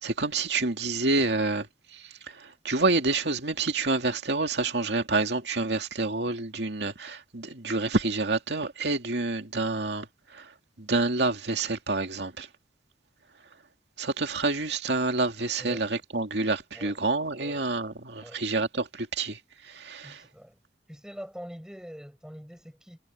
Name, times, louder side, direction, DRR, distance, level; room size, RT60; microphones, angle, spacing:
voice 1, 0.0-12.5 14.0-20.2, right 3 dB, 75° right, 2.3 m, -28 dB
voice 2, 20.0-20.6 20.9-23.0, equal, 5° right, 5.2 m, -44 dB
head